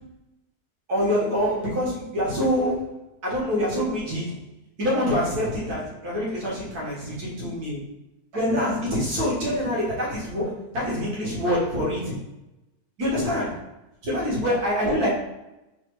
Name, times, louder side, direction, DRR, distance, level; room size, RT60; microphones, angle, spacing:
voice 1, 0.9-2.9 3.2-4.4 4.8-7.8 8.3-12.2 13.0-13.6 14.0-15.1, equal, 75° right, -5 dB, 2.0 m, -25 dB
4.1 x 2.7 x 4.6 m, 0.96 s
omnidirectional pair, 1.7 m